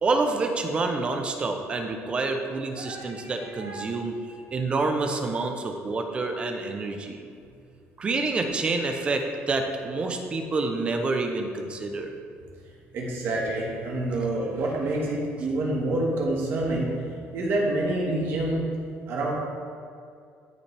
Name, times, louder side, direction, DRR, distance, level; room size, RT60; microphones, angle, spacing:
voice 1, 0.0-4.2 4.5-7.3 8.0-12.1, right 3 dB, 25° right, 5 dB, 0.6 m, -28 dB
voice 2, 2.8-3.3 3.6-3.9 12.9-16.9 17.3-18.7 19.1-19.3, right 1 dB, 50° right, -2 dB, 1.5 m, -27 dB
13.0 x 5.6 x 3.3 m, 2.3 s
cardioid pair, 175°, 5 cm